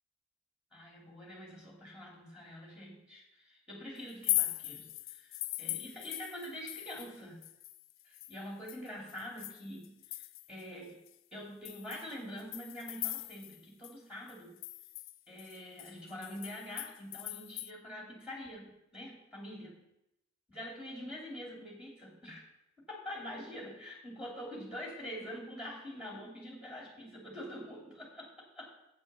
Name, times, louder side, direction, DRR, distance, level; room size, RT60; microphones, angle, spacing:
voice 1, 0.7-7.4 8.0-11.0 11.3-14.6 15.3-19.9 20.5-22.5 22.8-28.6, equal, 5° right, -2 dB, 3.0 m, -45 dB
sound 1, 4.1-7.2 7.4-10.6 11.1-11.2 11.6-13.6 13.8-13.9 14.3-17.7, left 16 dB, 85° left, 0.5 m, -39 dB
8.6 x 7.3 x 6.9 m, 0.87 s
head